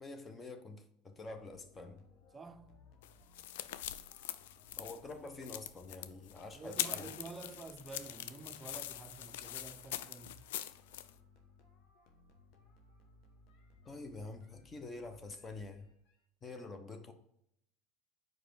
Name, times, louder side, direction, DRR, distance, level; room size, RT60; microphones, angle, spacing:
voice 1, 0.0-2.0 4.8-7.1 13.8-15.9 16.4-17.1, left 3 dB, 25° left, 0.9 m, -47 dB
sound 1, 1.3-16.2, left 3 dB, 55° left, 1.1 m, -63 dB
voice 2, 2.3-2.9 6.5-10.5, right 4 dB, 20° right, 0.5 m, -50 dB
sound 2, 3.0-11.1, left 12 dB, 75° left, 0.3 m, -43 dB
5.0 x 4.6 x 4.7 m
hypercardioid pair, 90°, 0 cm